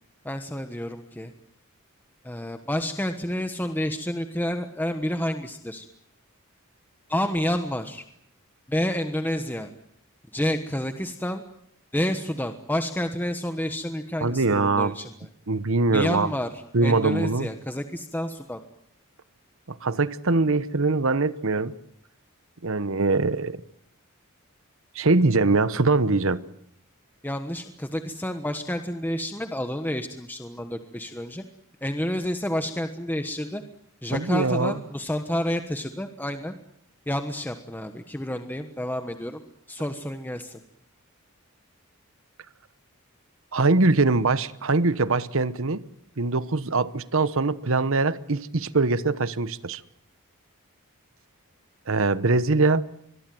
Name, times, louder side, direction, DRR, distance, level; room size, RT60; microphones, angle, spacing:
voice 1, 0.2-1.3 2.2-5.9 7.1-8.0 8.7-9.7 10.3-11.4 11.9-15.1 15.9-16.5 16.8-18.6 27.2-31.4 31.8-33.6 34.0-36.5 37.1-39.4 39.7-40.6, left 1 dB, 10° left, 1.3 m, -29 dB
voice 2, 14.2-15.0 15.5-16.3 16.7-17.5 19.8-21.7 22.6-23.6 24.9-26.4 34.1-34.7 43.5-45.8 46.2-49.8 51.9-52.8, right 3 dB, 65° right, 1.1 m, -22 dB
25.0 x 22.5 x 7.8 m
head